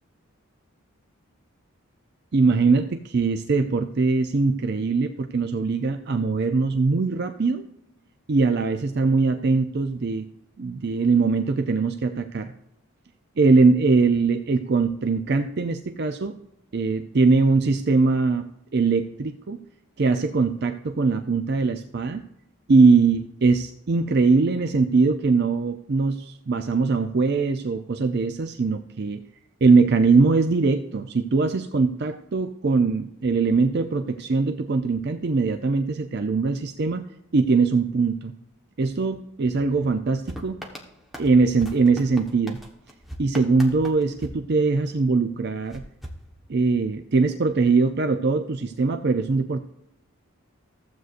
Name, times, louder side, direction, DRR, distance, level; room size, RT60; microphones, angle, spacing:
voice 1, 2.3-7.6 8.3-10.3 10.6-12.5 13.4-16.3 16.7-18.4 18.7-19.6 20.0-22.2 22.7-29.2 29.6-37.1 37.3-38.3 38.8-40.6 41.2-42.6 43.2-45.8 46.5-49.6, right 4 dB, 50° right, 7 dB, 0.5 m, -21 dB
sound 1, 40.3-45.1 45.7-46.9, equal, ahead, 1.1 m, -41 dB
15.0 x 7.9 x 2.5 m, 0.81 s
head